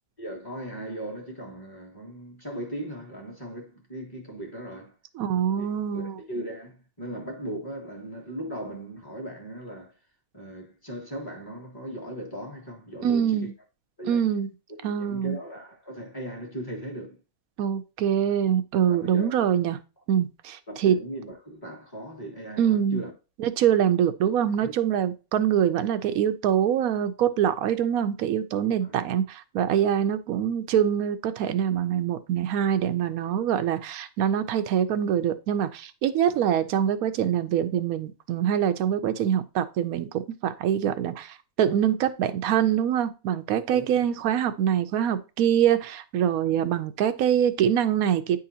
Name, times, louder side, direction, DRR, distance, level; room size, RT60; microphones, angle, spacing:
voice 1, 0.2-4.9 5.6-5.7 5.9-9.9 10.3-13.5 14.0-14.2 14.9-17.2 18.9-19.3 20.7-23.1 24.6-24.7 28.8-29.0 30.0-30.1 36.3-36.4 43.7-44.1, right 1 dB, 15° left, 1.6 m, -38 dB
voice 2, 5.2-6.2 13.0-13.5 14.1-14.5 14.8-15.4 17.6-19.8 20.1-21.0 22.6-23.0 23.4-48.4, right 9 dB, 85° right, 1.1 m, -24 dB
9.6 x 3.8 x 2.8 m
omnidirectional pair, 1.5 m